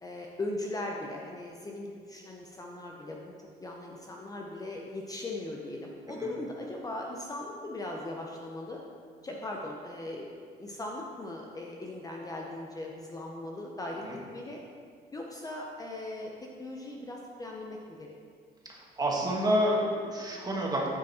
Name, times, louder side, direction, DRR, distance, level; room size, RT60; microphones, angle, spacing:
voice 1, 0.0-8.8 9.2-10.3 10.6-14.0 14.3-14.6 15.1-16.3 16.6-18.1, left 2 dB, 20° left, -1 dB, 0.8 m, -39 dB
voice 2, 19.0-20.9, equal, 20° right, -2 dB, 1.7 m, -28 dB
9.6 x 5.2 x 4.3 m, 2.1 s
cardioid pair, 110°, 17 cm